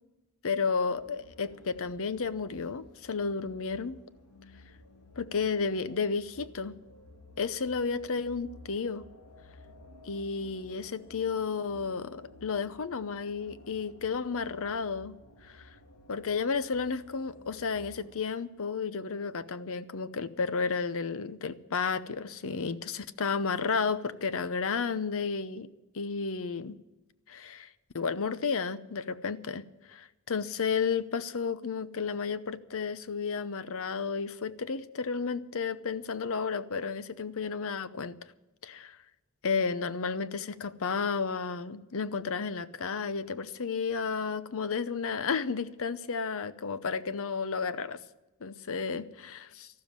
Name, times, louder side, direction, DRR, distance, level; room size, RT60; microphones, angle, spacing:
voice 1, 0.4-4.0 5.2-6.7 7.4-9.0 10.0-15.2 15.4-15.7 16.1-25.7 25.9-26.8 27.3-27.7 27.9-29.6 29.9-38.1 38.6-39.0 39.4-48.0 48.4-49.7, left 5 dB, 65° left, 0.7 m, -32 dB
sound 1, 0.9-18.1, left 1 dB, 80° left, 2.0 m, -54 dB
13.5 x 12.5 x 7.5 m
head